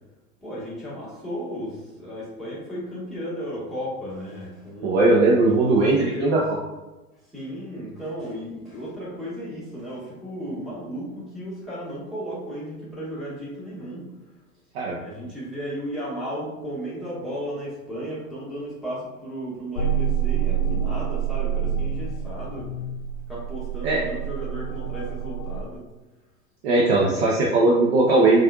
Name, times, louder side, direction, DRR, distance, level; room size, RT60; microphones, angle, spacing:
voice 1, 0.4-5.1 5.4-6.4 7.3-14.1 15.0-22.7 23.3-25.8, equal, ahead, -9 dB, 1.3 m, -34 dB
voice 2, 4.8-6.4 14.7-15.0 23.8-24.0 26.6-28.4, right 2 dB, 45° right, -3 dB, 0.6 m, -19 dB
sound 1, 19.8-25.6, right 8 dB, 50° left, 0.4 m, -27 dB
4.2 x 2.4 x 2.3 m, 1.1 s
figure-of-eight pair, 95°, 47 cm